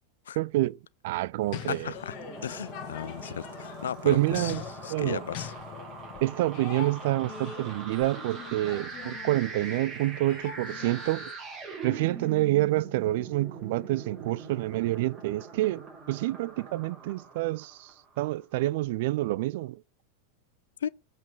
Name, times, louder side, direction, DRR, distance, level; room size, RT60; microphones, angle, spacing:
voice 1, 0.4-0.8 1.0-1.9 4.0-4.6 4.9-5.2 6.2-11.3 11.8-17.9 18.2-19.8, right 17 dB, 50° right, 0.3 m, -28 dB
sound 1, 1.4-11.3, left 9 dB, 40° left, 1.4 m, -43 dB
voice 2, 1.7-5.5 20.8-20.9, left 9 dB, 65° left, 0.4 m, -36 dB
sound 2, 1.8-18.2, right 4 dB, 25° right, 4.4 m, -43 dB
7.7 x 5.1 x 4.7 m
figure-of-eight pair, 90°, 0 cm